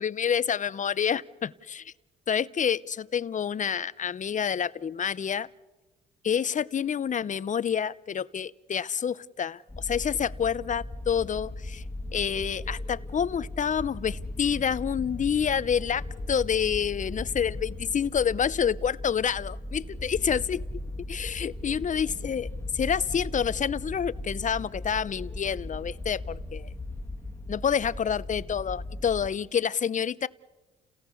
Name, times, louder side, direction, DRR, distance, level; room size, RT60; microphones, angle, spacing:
voice 1, 0.0-1.9 2.3-5.5 6.2-11.8 12.1-20.6 21.1-22.5 22.7-26.7 27.5-30.3, left 7 dB, 40° left, 18 dB, 0.7 m, -28 dB
sound 1, 9.7-29.3, left 1 dB, 15° left, 1.8 m, -38 dB
30.0 x 17.5 x 7.0 m, 1.2 s
cardioid pair, 90°, 20 cm